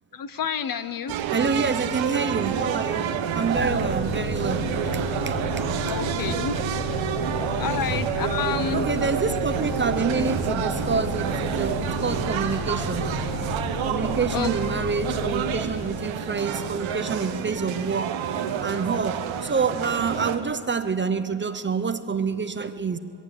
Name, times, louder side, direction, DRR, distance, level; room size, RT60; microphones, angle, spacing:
voice 1, 0.1-1.1 5.9-6.6 7.6-8.9 14.3-14.5, left 8 dB, 45° left, 13 dB, 0.9 m, -29 dB
sound 1, 1.1-20.4, right 8 dB, 80° right, 1.5 m, -28 dB
voice 2, 1.3-4.7 5.3-5.4 8.7-13.1 13.8-18.1 18.6-23.0, right 5 dB, 25° right, 11 dB, 0.7 m, -27 dB
Bus, 3.5-15.6, left 4 dB, 65° left, 1.9 m, -33 dB
21.0 x 16.0 x 8.5 m, 2.6 s
cardioid pair, 125°, 46 cm